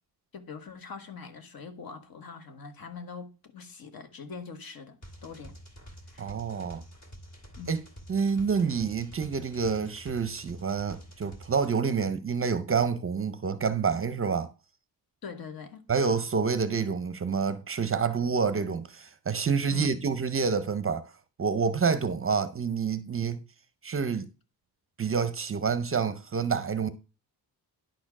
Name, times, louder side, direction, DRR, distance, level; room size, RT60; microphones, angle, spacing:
voice 1, 0.3-5.0 5.2-5.6 6.1-6.2 7.6-7.8 15.2-15.8 19.7-20.0, left 5 dB, 55° left, 1.4 m, -42 dB
sound 1, 5.0-11.7, equal, 40° left, 2.3 m, -48 dB
voice 2, 6.2-6.8 7.7-7.8 8.1-14.5 15.9-21.1 21.4-23.4 23.8-24.3 25.0-26.9, right 5 dB, 30° right, 0.6 m, -28 dB
10.5 x 4.4 x 5.9 m
wide cardioid pair, 165°, 42 cm